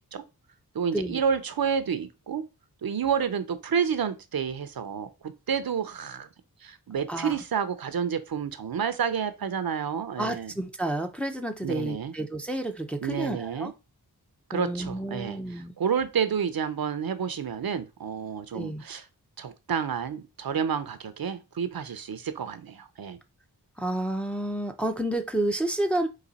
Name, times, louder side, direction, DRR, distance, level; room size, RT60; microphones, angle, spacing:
voice 1, 0.7-2.4 2.8-6.3 6.6-10.5 11.6-12.1 13.0-13.7 14.5-19.1 19.4-23.2, right 7 dB, 65° right, 0.6 m, -30 dB
voice 2, 10.2-13.7 14.5-15.7 18.5-18.8 23.8-26.1, right 1 dB, 5° left, 0.5 m, -30 dB
4.1 x 2.7 x 3.9 m
wide cardioid pair, 70°, 38 cm